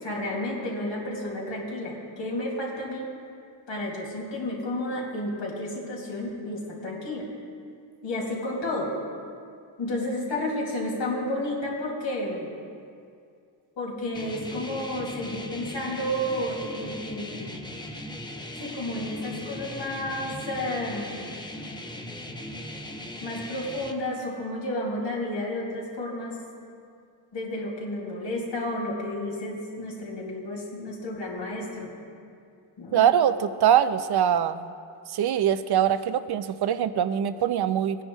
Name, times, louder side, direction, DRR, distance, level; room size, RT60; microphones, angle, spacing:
voice 1, 0.0-3.1 3.7-7.3 8.0-8.9 9.8-12.5 13.8-17.5 18.6-21.1 23.2-26.4 27.3-31.9 32.8-33.0, left 1 dB, 70° left, -3 dB, 2.7 m, -31 dB
sound 1, 14.1-23.9, left 1 dB, 10° left, 0.7 m, -39 dB
voice 2, 32.9-34.7 35.1-38.0, right 9 dB, 60° right, 12 dB, 0.6 m, -23 dB
19.0 x 10.0 x 2.3 m, 2.3 s
cardioid pair, 110°, 45 cm